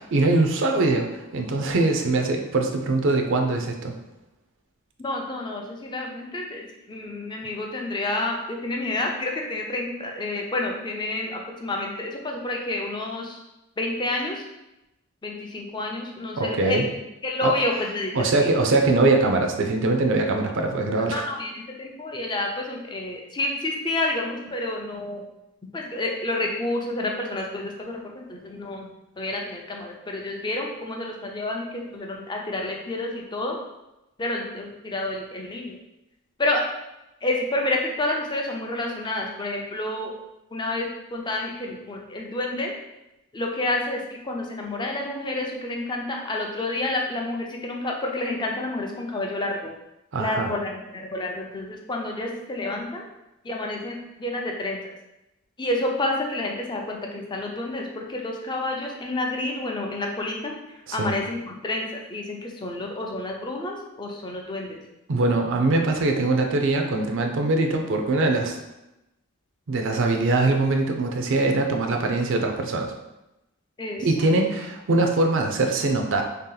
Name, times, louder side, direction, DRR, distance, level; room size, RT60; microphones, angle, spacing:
voice 1, 0.0-4.0 16.4-16.9 17.4-17.5 18.1-21.3 50.1-50.5 60.9-61.1 65.1-68.6 69.7-72.9 74.0-76.2, right 2 dB, 55° right, 4 dB, 0.5 m, -22 dB
voice 2, 5.0-13.4 13.8-14.4 15.2-16.9 17.2-18.5 21.1-25.2 25.7-28.9 29.2-33.6 34.2-35.7 36.4-36.6 37.2-40.1 40.5-42.7 43.3-49.7 50.2-53.0 53.4-54.8 55.6-60.5 60.9-64.8 73.8-74.3, left 2 dB, 20° left, 0 dB, 0.5 m, -29 dB
3.4 x 2.9 x 3.8 m, 0.94 s
head